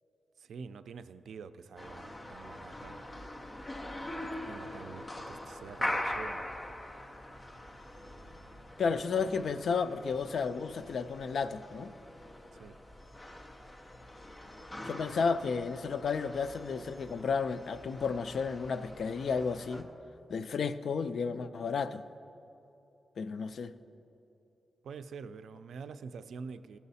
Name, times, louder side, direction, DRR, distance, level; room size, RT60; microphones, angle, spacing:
voice 1, 0.4-3.1 4.2-6.5 12.6-12.8 24.8-26.8, right 5 dB, 90° right, 0.4 m, -46 dB
sound 1, 1.8-19.8, left 1 dB, 20° left, 0.6 m, -43 dB
voice 2, 8.8-11.9 14.8-19.9 20.3-22.0 23.2-23.7, left 5 dB, 55° left, 0.3 m, -32 dB
16.0 x 6.9 x 4.1 m
wide cardioid pair, 175°, 0 cm